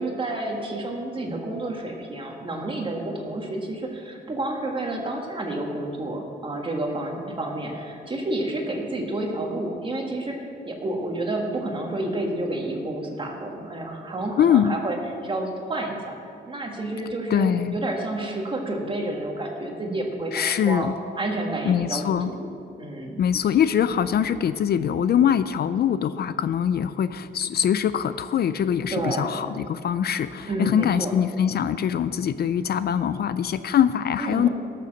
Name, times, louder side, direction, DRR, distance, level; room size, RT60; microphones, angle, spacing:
voice 1, 0.0-15.0 15.2-16.1 16.5-20.9 21.2-22.5 22.8-23.2 28.9-29.4 30.5-31.1 34.2-34.5, right 2 dB, 25° right, 1 dB, 1.6 m, -30 dB
voice 2, 14.4-14.8 17.3-17.8 20.3-20.9 21.7-22.3 23.2-34.5, left 9 dB, 55° left, 12 dB, 0.4 m, -23 dB
17.5 x 6.8 x 6.5 m, 2.5 s
wide cardioid pair, 165°, 19 cm